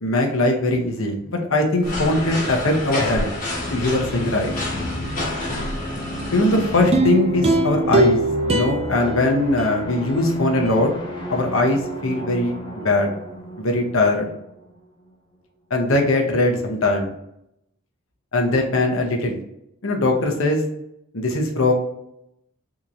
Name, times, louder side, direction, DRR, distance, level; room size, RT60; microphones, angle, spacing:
voice 1, 0.0-3.3 3.7-4.5 6.3-8.2 8.5-10.9 11.3-13.1 13.6-14.3 15.7-17.1 18.3-19.4 19.8-20.6 21.1-21.7, left 2 dB, 75° left, 2 dB, 0.9 m, -20 dB
sound 1, 1.8-6.9, left 1 dB, 40° left, 1.1 m, -29 dB
sound 2, 3.6-15.1, equal, 20° left, 0.7 m, -33 dB
sound 3, 6.9-10.2 10.7-10.8, right 2 dB, 30° right, 0.4 m, -22 dB
3.6 x 3.0 x 2.6 m, 0.80 s
head